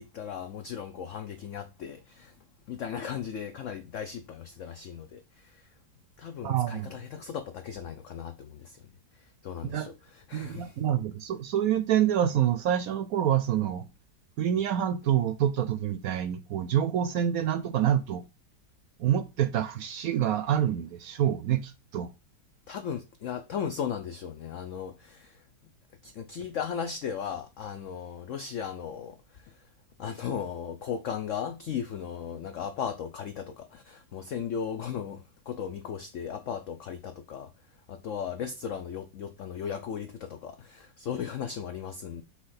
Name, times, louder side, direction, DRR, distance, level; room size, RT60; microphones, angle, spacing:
voice 1, 0.0-2.4 2.7-5.7 6.2-10.8 22.7-25.4 26.0-29.7 30.0-37.5 37.9-42.2, left 7 dB, 65° left, 0.8 m, -37 dB
voice 2, 6.4-6.9 9.6-9.9 10.3-13.8 14.4-18.2 19.0-22.1, right 10 dB, 70° right, 0.9 m, -27 dB
6.0 x 3.3 x 5.7 m
omnidirectional pair, 1.8 m